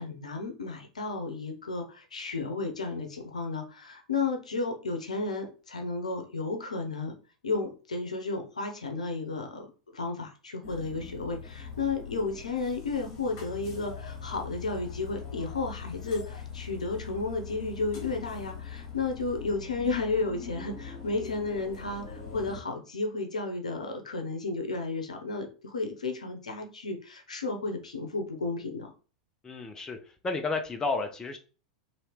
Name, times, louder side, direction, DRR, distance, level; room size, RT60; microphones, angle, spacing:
voice 1, 0.0-7.1 7.4-9.7 9.9-28.9, left 3 dB, 75° left, 4 dB, 0.7 m, -33 dB
sound 1, 10.6-22.6, left 6 dB, 55° left, 1.1 m, -42 dB
voice 2, 29.4-30.0 30.2-31.4, left 3 dB, 15° left, 5 dB, 0.5 m, -31 dB
2.9 x 2.8 x 3.2 m, 0.36 s
figure-of-eight pair, 90°, 4 cm